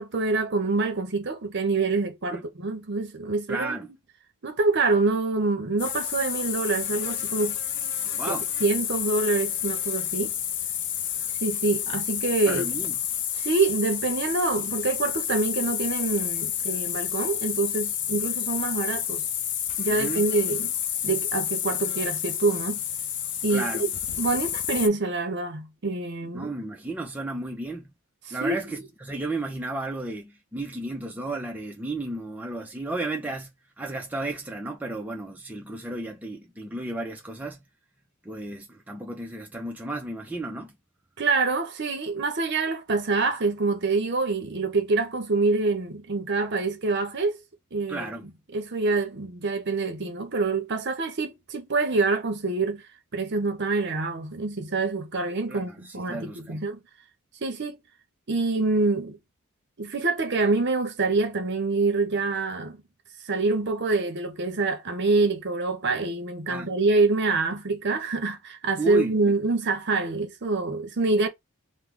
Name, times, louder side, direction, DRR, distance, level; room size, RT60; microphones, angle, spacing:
voice 1, 0.0-3.8 4.4-7.6 8.3-10.3 11.4-12.7 13.4-19.2 19.8-20.7 21.0-22.8 23.4-23.9 24.2-26.5 28.3-28.8 41.2-47.4 47.7-48.2 48.5-52.8 53.1-56.8 57.4-57.8 58.3-59.2 59.8-62.8 63.2-71.3, right 3 dB, 50° right, 0.7 m, -26 dB
voice 2, 3.5-3.9 8.2-8.5 12.5-13.0 19.9-20.3 23.5-23.9 26.3-27.9 28.3-33.5 33.8-37.6 38.2-40.7 47.9-48.2 55.5-56.7 66.5-66.7 68.8-69.3, right 2 dB, 5° right, 0.5 m, -33 dB
sound 1, 5.8-24.9, left 10 dB, 55° left, 0.5 m, -30 dB
3.1 x 2.1 x 3.6 m
head